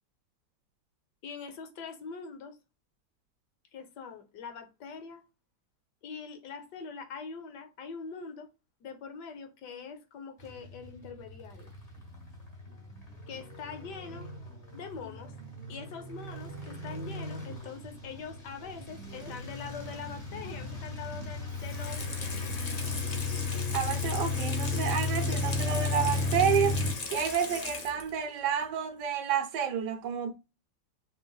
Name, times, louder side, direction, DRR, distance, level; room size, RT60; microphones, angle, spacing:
voice 1, 1.2-2.6 3.7-5.2 6.0-8.5 8.8-11.7 13.3-14.3 14.7-22.1, left 5 dB, 65° left, 1.4 m, -43 dB
sound 1, 10.4-26.9, left 3 dB, 20° left, 1.4 m, -35 dB
Water tap faucet / Sink (filling or washing), 21.5-28.2 28.6-28.7, left 3 dB, 45° left, 0.5 m, -39 dB
voice 2, 23.7-26.8 27.1-30.3, right 7 dB, 70° right, 1.2 m, -30 dB
5.8 x 3.3 x 2.3 m
omnidirectional pair, 2.1 m